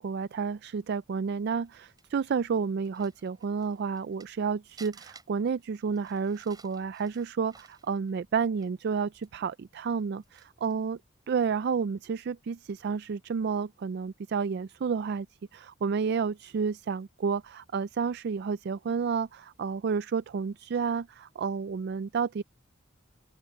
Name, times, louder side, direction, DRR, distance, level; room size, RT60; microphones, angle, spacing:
voice 1, 0.0-11.0 11.3-15.3 15.5-22.4, right 5 dB, 55° right, 0.4 m, -30 dB
Crumpling crinkling, 1.4-4.4 4.8-8.9 9.2-9.3 9.9-10.8 11.4-11.6, right 4 dB, 20° right, 6.3 m, -56 dB
open air
head